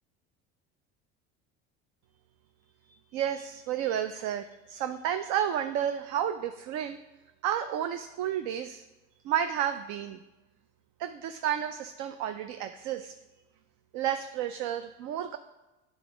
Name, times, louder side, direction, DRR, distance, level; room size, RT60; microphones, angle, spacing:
voice 1, 2.9-7.0 7.4-8.8 9.2-10.2 11.0-13.1 13.9-15.4, right 10 dB, 70° right, 9 dB, 0.5 m, -31 dB
9.2 x 3.9 x 4.9 m, 1.1 s
supercardioid pair, 90°, 31 cm